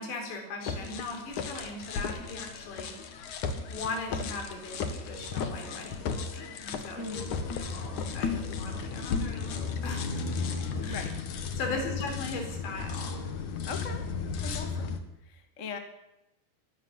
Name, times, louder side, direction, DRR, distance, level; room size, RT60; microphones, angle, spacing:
voice 1, 0.0-2.9 3.7-6.1 6.3-7.2 7.6-10.3 10.8-11.1 11.6-13.2, left 3 dB, 85° left, 3 dB, 6.8 m, -39 dB
sound 1, 0.6-15.0, left 5 dB, 55° left, 2.6 m, -34 dB
sound 2, 4.0-13.4, right 1 dB, 70° right, 8.3 m, -55 dB
voice 2, 7.0-7.3 10.9-11.2 11.7-11.8 13.7-14.1 14.4-15.0 15.2-15.8, left 4 dB, 25° left, 6 dB, 1.8 m, -39 dB
24.0 x 12.5 x 10.0 m, 0.91 s
omnidirectional pair, 4.9 m